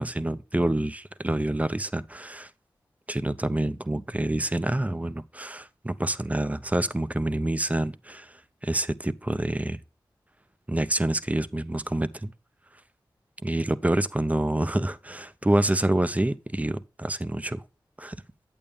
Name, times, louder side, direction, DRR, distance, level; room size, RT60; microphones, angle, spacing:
voice 1, 0.0-2.5 3.1-9.8 10.7-12.3 13.4-17.6 18.0-18.2, right 1 dB, 15° right, 0.5 m, -27 dB
8.5 x 7.0 x 3.5 m
cardioid pair, 40°, 8 cm